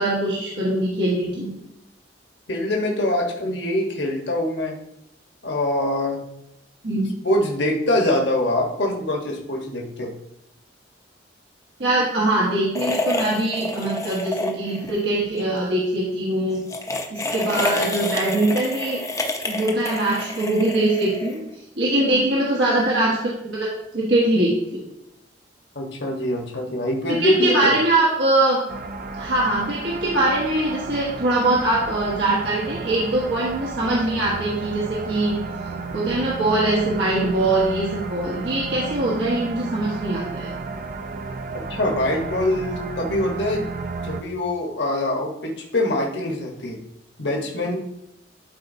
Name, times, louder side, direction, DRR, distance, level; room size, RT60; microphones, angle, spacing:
voice 1, 0.0-1.5 6.8-7.2 11.8-16.6 17.1-19.0 19.4-21.4 21.8-24.9 27.1-28.6 29.2-35.4 35.9-40.5, right 1 dB, 70° right, -5 dB, 1.4 m, -22 dB
voice 2, 2.5-4.8 5.4-6.2 7.2-10.1 25.7-27.8 41.7-43.7 44.0-46.8 47.2-47.8, left 1 dB, 65° left, 0 dB, 1.3 m, -24 dB
sound 1, 12.7-15.0 15.2-15.4 16.5-21.5, left 2 dB, 15° left, 0.7 m, -28 dB
sound 2, 28.7-44.2, right 4 dB, 45° right, 0.5 m, -33 dB
12.0 x 4.6 x 2.7 m, 0.81 s
head